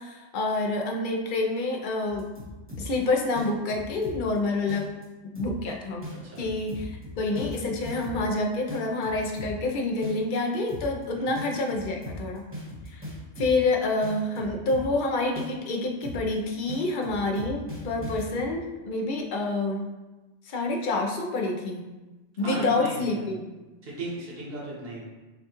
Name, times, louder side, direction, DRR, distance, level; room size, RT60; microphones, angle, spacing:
voice 1, 0.0-2.4 2.8-4.9 5.3-6.1 6.4-12.5 12.9-13.1 13.4-19.9 20.4-21.9 22.4-23.5, left 2 dB, 55° left, 1 dB, 0.6 m, -28 dB
sound 1, 2.1-3.0 3.3-4.4 4.7-5.0 5.3-5.7 6.0-8.4 8.7-9.7 10.0-10.4 10.7-11.0 11.3-13.7 14.0-15.0 15.3-15.7 16.0-16.4 16.7-18.5, left 1 dB, 10° right, 1.0 m, -38 dB
voice 2, 6.1-6.4 11.1-11.3 22.4-23.0 23.8-25.0, right 2 dB, 50° right, -6 dB, 1.2 m, -36 dB
5.8 x 2.3 x 2.9 m, 1.1 s
omnidirectional pair, 1.3 m